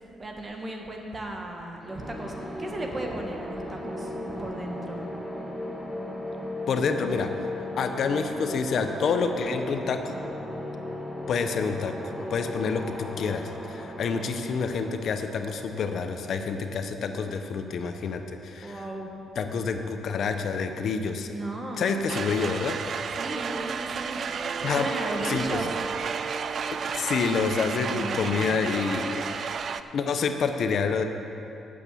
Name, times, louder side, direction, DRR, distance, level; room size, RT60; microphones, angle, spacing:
voice 1, 0.2-4.1 4.4-5.0 18.6-19.1 21.2-22.0 23.2-24.2 24.6-25.7 27.8-28.6, right 2 dB, 30° right, 2 dB, 1.5 m, -36 dB
sound 1, 1.8-16.5, left 1 dB, ahead, 1.4 m, -36 dB
voice 2, 6.7-10.2 11.3-18.8 19.4-21.3 21.8-22.8 24.6-24.9 25.3-25.6 26.9-29.2 29.9-31.0, left 5 dB, 60° left, 7 dB, 0.7 m, -28 dB
sound 2, 22.1-29.8, right 6 dB, 55° right, 0.4 m, -32 dB
8.6 x 6.9 x 8.4 m, 2.9 s
cardioid pair, 90°, 0 cm